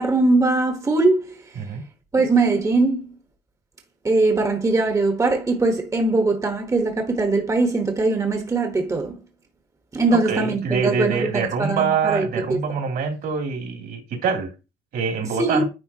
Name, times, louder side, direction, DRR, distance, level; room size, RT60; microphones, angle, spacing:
voice 1, 0.0-1.4 2.1-3.1 4.0-9.2 9.9-12.6 15.4-15.6, right 3 dB, 20° right, 1.2 m, -21 dB
voice 2, 10.1-14.5 14.9-15.6, right 6 dB, 65° right, 2.8 m, -25 dB
9.8 x 3.9 x 2.8 m
cardioid pair, 110°, 17 cm